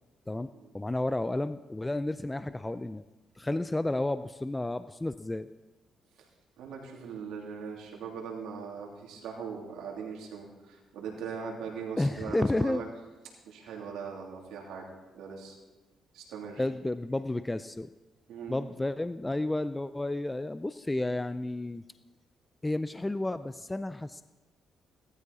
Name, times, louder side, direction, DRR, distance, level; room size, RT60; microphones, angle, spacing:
voice 1, 0.3-3.0 3.4-5.5 12.0-12.8 16.6-17.9 18.5-21.8 22.6-24.2, left 2 dB, 15° left, 12 dB, 0.4 m, -31 dB
voice 2, 6.6-12.9 13.4-14.9 15.1-15.6 16.1-16.6 18.3-18.7, right 6 dB, 90° right, -1 dB, 3.2 m, -40 dB
17.5 x 13.5 x 4.2 m, 1.2 s
cardioid pair, 90°, 0 cm